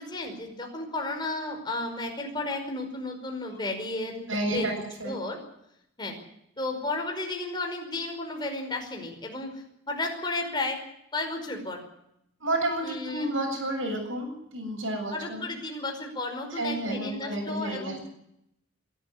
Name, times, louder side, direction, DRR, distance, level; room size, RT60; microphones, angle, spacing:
voice 1, 0.0-5.4 6.0-6.1 6.6-10.8 11.1-11.8 12.8-13.3 15.1-18.0, left 2 dB, 20° left, 2 dB, 5.3 m, -33 dB
voice 2, 4.3-4.7 5.0-5.1 12.4-15.5 16.6-18.1, right 1 dB, 80° right, 2 dB, 7.8 m, -31 dB
24.0 x 12.5 x 9.9 m, 0.77 s
head